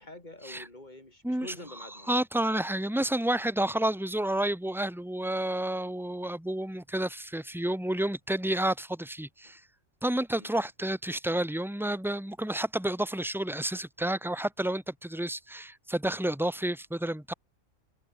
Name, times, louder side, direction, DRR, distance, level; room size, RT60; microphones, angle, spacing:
voice 1, 0.0-2.2 9.4-9.6 10.3-10.5, left 1 dB, 35° left, 5.1 m, -47 dB
voice 2, 2.1-9.6 10.0-17.3, right 1 dB, ahead, 2.5 m, -30 dB
omnidirectional pair, 1.4 m